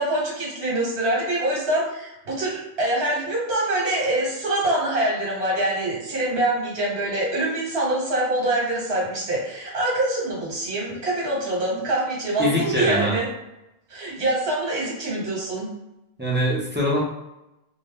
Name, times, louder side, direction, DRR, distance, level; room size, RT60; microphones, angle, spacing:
voice 1, 0.0-13.3 13.9-15.7, right 1 dB, 70° right, -4 dB, 1.2 m, -25 dB
voice 2, 12.4-13.2 16.2-17.0, equal, 15° right, -6 dB, 0.4 m, -23 dB
2.6 x 2.0 x 3.5 m, 0.92 s
omnidirectional pair, 1.1 m